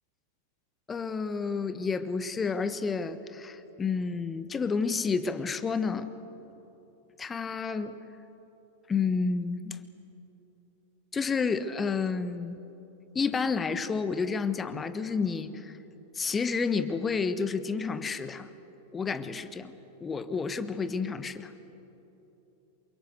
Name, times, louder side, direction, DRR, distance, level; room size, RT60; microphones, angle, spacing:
voice 1, 0.9-6.1 7.2-8.0 8.9-9.8 11.1-12.6 13.1-15.8 16.1-18.5 18.9-19.7 20.0-21.5, left 5 dB, 20° left, 11 dB, 1.3 m, -30 dB
28.5 x 23.5 x 8.1 m, 3.0 s
figure-of-eight pair, 90°, 0 cm